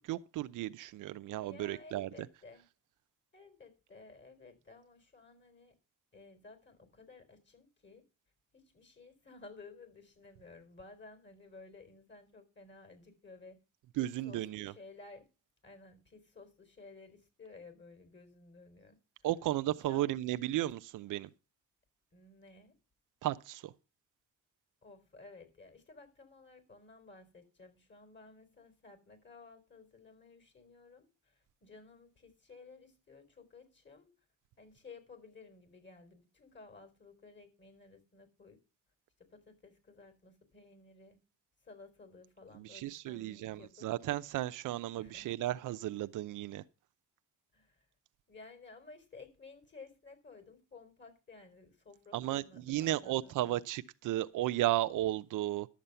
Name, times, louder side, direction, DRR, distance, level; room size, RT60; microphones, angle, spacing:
voice 1, 0.0-2.1 14.0-14.7 19.2-21.3 23.2-23.7 42.6-46.6 52.1-55.7, right 14 dB, 80° right, 0.7 m, -34 dB
voice 2, 1.3-2.6 3.3-5.7 6.1-8.0 8.5-13.6 13.9-15.3 15.6-19.0 19.8-20.2 22.1-22.7 24.8-34.1 34.6-38.6 39.2-41.2 41.6-43.9 45.0-45.3 47.5-47.9 48.3-53.6, left 3 dB, 35° left, 4.5 m, -55 dB
12.0 x 7.4 x 6.8 m
cardioid pair, 90°, 31 cm